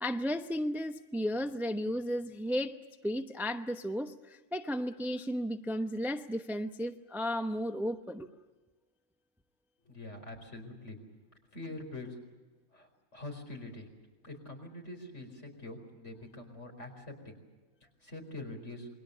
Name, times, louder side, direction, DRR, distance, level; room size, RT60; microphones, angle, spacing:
voice 1, 0.0-2.8 3.0-8.3, equal, ahead, 7 dB, 0.7 m, -34 dB
voice 2, 9.8-11.0 11.5-12.2 12.7-13.9 14.2-17.4 18.0-18.9, left 2 dB, 60° left, 3 dB, 5.1 m, -44 dB
28.5 x 22.0 x 6.8 m, 1.2 s
omnidirectional pair, 1.4 m